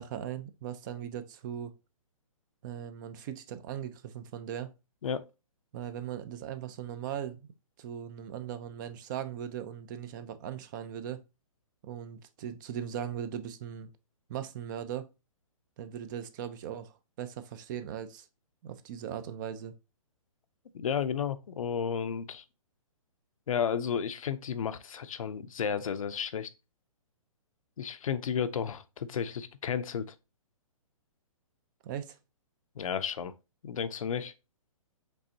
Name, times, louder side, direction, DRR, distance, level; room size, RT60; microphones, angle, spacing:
voice 1, 0.0-1.7 2.6-4.7 5.7-7.5 7.8-11.2 11.8-13.9 14.3-15.1 15.8-18.3 18.6-19.7 31.8-32.2, right 9 dB, 35° right, 0.5 m, -39 dB
voice 2, 20.7-22.4 23.5-26.5 27.8-30.1 32.8-33.3 33.6-34.3, left 7 dB, 75° left, 0.6 m, -32 dB
5.3 x 3.4 x 2.7 m
hypercardioid pair, 140°, 18 cm